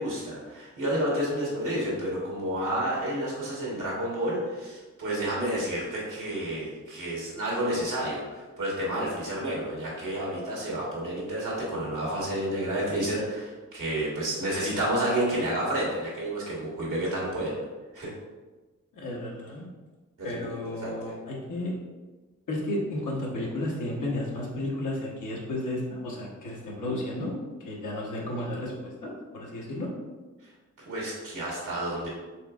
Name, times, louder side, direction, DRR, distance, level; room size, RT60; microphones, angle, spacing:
voice 1, 0.0-17.6 17.9-18.1 20.2-20.5 20.8-21.1 30.8-32.1, right 1 dB, 85° right, -4 dB, 1.5 m, -30 dB
voice 2, 18.9-19.6 20.2-21.7 22.5-27.3 27.7-28.7 29.0-29.9, left 1 dB, 90° left, -3 dB, 0.9 m, -33 dB
4.4 x 3.4 x 2.3 m, 1.2 s
cardioid pair, 50°, 30 cm